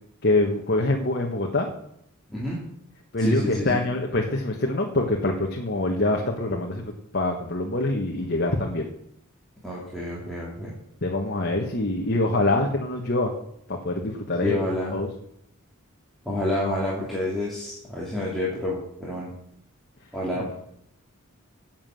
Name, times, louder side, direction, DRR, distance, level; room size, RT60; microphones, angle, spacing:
voice 1, 0.2-1.7 3.1-8.9 11.0-13.3 13.7-14.6 14.9-15.1 20.3-20.5, left 2 dB, 50° left, 0 dB, 1.4 m, -25 dB
voice 2, 2.3-2.6 3.2-3.9 9.6-10.7 12.5-12.6 14.4-15.0 16.2-19.3 20.1-20.5, left 1 dB, ahead, -7 dB, 2.8 m, -29 dB
10.5 x 7.5 x 7.7 m, 0.73 s
head